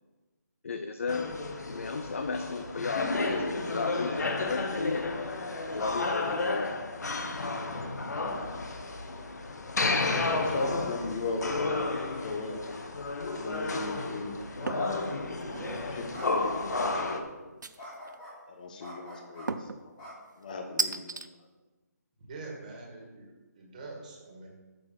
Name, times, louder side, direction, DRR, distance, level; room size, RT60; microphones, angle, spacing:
voice 1, 0.6-1.3 1.7-5.3 5.7-6.8, left 4 dB, 45° left, 8 dB, 0.6 m, -34 dB
sound 1, 1.1-17.2, left 3 dB, 70° left, 1.3 m, -32 dB
voice 2, 10.2-12.7 13.3-15.0 15.7-17.5 18.5-19.9 20.4-21.0, left 3 dB, 25° left, 4 dB, 1.1 m, -37 dB
sound 2, 14.7-14.9 15.4-15.9 17.6-18.1 19.5-19.8 20.8-21.3, right 3 dB, 90° right, 0.7 m, -33 dB
sound 3, 16.1-16.3 16.6-16.8 17.8-18.3 18.8-19.5 20.0-20.8, equal, 10° left, 2.1 m, -45 dB
voice 3, 22.2-24.5, right 3 dB, 25° right, 0 dB, 1.9 m, -44 dB
8.4 x 6.6 x 5.8 m, 1.2 s
hypercardioid pair, 170°, 10 cm